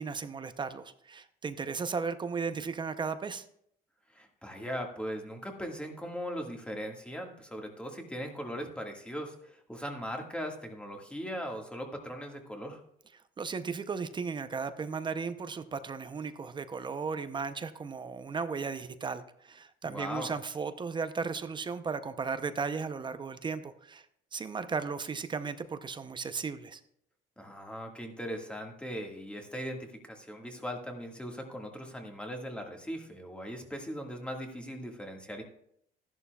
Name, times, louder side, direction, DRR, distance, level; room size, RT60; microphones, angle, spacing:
voice 1, 0.0-3.4 13.4-24.1 24.3-26.8, right 5 dB, 30° right, 11 dB, 0.6 m, -35 dB
voice 2, 4.1-12.8 19.8-20.3 27.4-35.4, equal, 5° left, 2 dB, 1.7 m, -39 dB
14.0 x 11.0 x 2.3 m, 0.70 s
cardioid pair, 110°, 17 cm